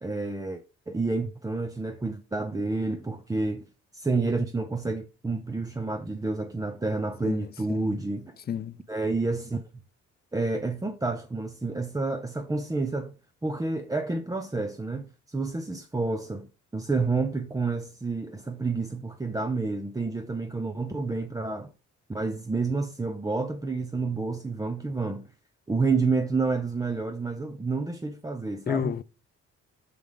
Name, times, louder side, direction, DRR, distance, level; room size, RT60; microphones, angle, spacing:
voice 1, 0.0-3.6 3.9-8.3 8.9-9.7 10.3-13.1 13.4-16.5 16.7-21.7 22.1-25.3 25.7-28.9, right 3 dB, 10° right, 0.6 m, -29 dB
voice 2, 7.2-8.0 8.5-8.7 28.7-29.0, left 8 dB, 35° left, 0.4 m, -31 dB
6.2 x 5.0 x 3.6 m
cardioid pair, 90°, 30 cm